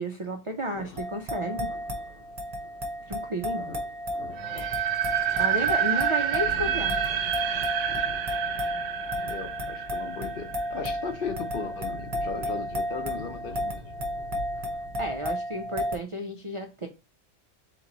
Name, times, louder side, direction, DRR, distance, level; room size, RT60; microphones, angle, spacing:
voice 1, 0.0-1.7 3.1-3.6 5.4-6.9 14.6-14.7 15.0-16.9, right 1 dB, 55° right, 0.3 m, -32 dB
sound 1, 0.7-15.2, left 3 dB, 75° left, 1.2 m, -45 dB
sound 2, 1.0-16.0, equal, 35° right, 0.7 m, -33 dB
sound 3, 4.4-11.2, right 10 dB, 80° right, 1.0 m, -28 dB
voice 2, 9.2-13.8, left 5 dB, 50° left, 0.9 m, -36 dB
3.8 x 3.1 x 3.8 m
omnidirectional pair, 1.3 m